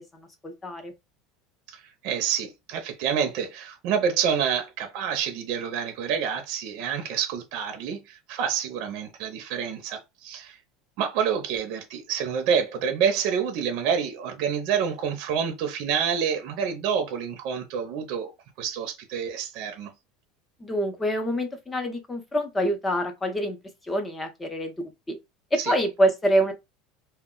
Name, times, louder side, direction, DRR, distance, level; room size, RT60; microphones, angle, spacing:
voice 1, 0.1-0.9 20.6-23.6 23.9-25.2 25.5-26.5, equal, 10° left, 0.6 m, -26 dB
voice 2, 1.7-10.6 11.0-18.3 18.6-19.9 25.6-25.7, right 7 dB, 55° right, 0.6 m, -28 dB
2.2 x 2.1 x 3.7 m
supercardioid pair, 155°, 0 cm